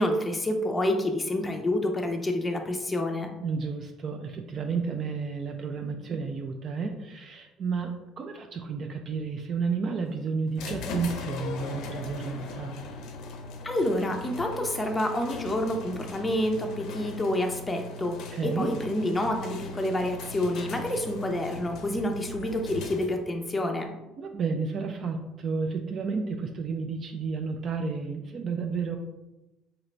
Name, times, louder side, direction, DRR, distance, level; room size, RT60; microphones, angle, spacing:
voice 1, 0.0-3.3 13.6-23.9, left 1 dB, 15° left, 3 dB, 0.6 m, -28 dB
voice 2, 3.4-12.7 18.3-18.7 24.2-29.0, right 5 dB, 45° right, 4 dB, 0.4 m, -31 dB
sound 1, 10.6-23.3, left 3 dB, 70° left, 0.5 m, -40 dB
3.8 x 2.9 x 3.2 m, 0.99 s
cardioid pair, 115°, 0 cm